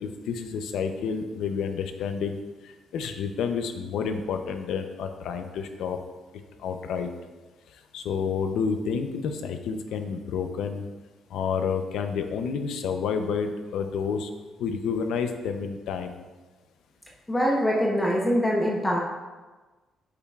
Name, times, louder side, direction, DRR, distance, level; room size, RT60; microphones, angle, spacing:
voice 1, 0.0-2.4 2.9-6.0 6.6-7.1 7.9-10.9 11.3-14.3 14.6-16.1, left 6 dB, 85° left, 6 dB, 0.6 m, -29 dB
voice 2, 17.3-19.0, equal, 10° left, -2 dB, 0.8 m, -23 dB
8.6 x 6.6 x 2.4 m, 1.3 s
cardioid pair, 145°, 0 cm